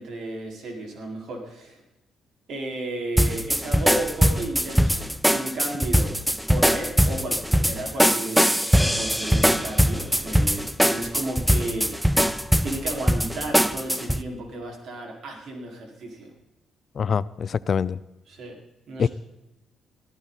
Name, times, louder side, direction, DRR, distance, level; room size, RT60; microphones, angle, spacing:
voice 1, 0.0-1.8 2.5-6.2 6.5-12.2 12.6-16.3 18.3-18.6 18.9-19.1, right 2 dB, 65° right, 0 dB, 4.8 m, -33 dB
sound 1, 3.2-14.2, equal, 5° right, 0.7 m, -21 dB
voice 2, 17.0-18.0 19.0-19.1, left 6 dB, 50° left, 18 dB, 0.5 m, -24 dB
23.5 x 14.0 x 4.2 m, 0.95 s
cardioid pair, 90°, 0 cm